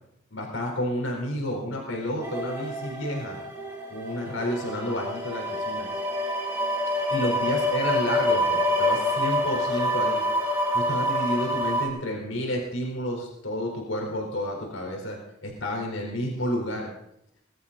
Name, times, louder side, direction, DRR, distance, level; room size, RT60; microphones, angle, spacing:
voice 1, 0.3-3.4 3.9-5.9 7.0-10.2 10.7-16.9, equal, 85° left, 0 dB, 4.5 m, -30 dB
sound 1, 2.2-11.9, left 1 dB, 10° right, 3.0 m, -27 dB
21.5 x 13.0 x 4.2 m, 0.78 s
head